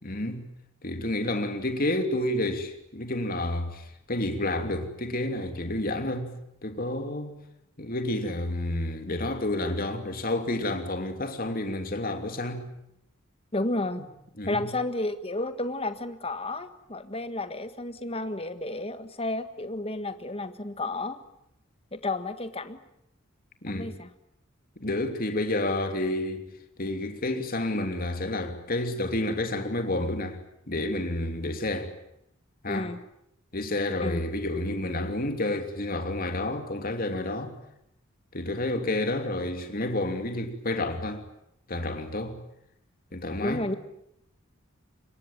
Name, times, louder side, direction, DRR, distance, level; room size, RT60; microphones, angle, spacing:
voice 1, 0.0-0.5 0.8-6.4 6.6-7.4 7.8-12.7 14.4-14.7 23.6-23.9 24.8-26.4 26.8-30.4 30.7-31.9 32.6-32.9 33.5-37.5 38.3-41.2 41.7-42.4 43.1-43.8, left 1 dB, 45° left, 3.0 m, -30 dB
voice 2, 13.5-14.0 14.5-21.2 21.9-22.8 23.7-24.1 32.7-33.0 34.0-34.2 43.4-43.7, left 2 dB, 30° left, 1.6 m, -32 dB
26.0 x 22.5 x 9.1 m
head